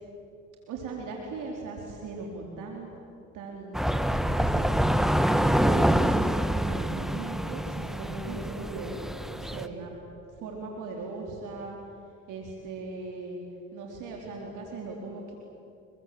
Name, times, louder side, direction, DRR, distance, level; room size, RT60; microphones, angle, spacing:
voice 1, 0.7-2.9 3.3-4.7 5.3-6.2 6.7-9.0 9.3-9.9 10.4-11.8 12.3-13.4 13.7-15.3, right 3 dB, 75° right, 0 dB, 4.3 m, -39 dB
sound 1, 3.7-9.7, equal, ahead, 1.4 m, -26 dB
29.0 x 23.5 x 8.0 m, 2.5 s
supercardioid pair, 70°, 31 cm